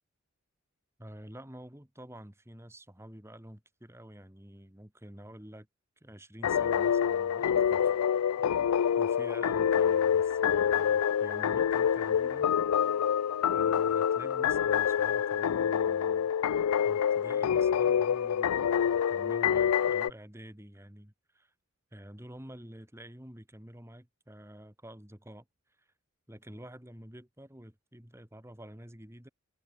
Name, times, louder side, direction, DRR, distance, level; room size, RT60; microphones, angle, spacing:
voice 1, 1.0-5.7 6.0-8.0 9.0-12.6 13.5-16.3 16.8-21.5 21.9-25.4 25.8-25.9 26.3-29.3, right 1 dB, 10° right, 2.1 m, -49 dB
sound 1, 6.4-20.1, left 8 dB, 85° left, 0.4 m, -27 dB
head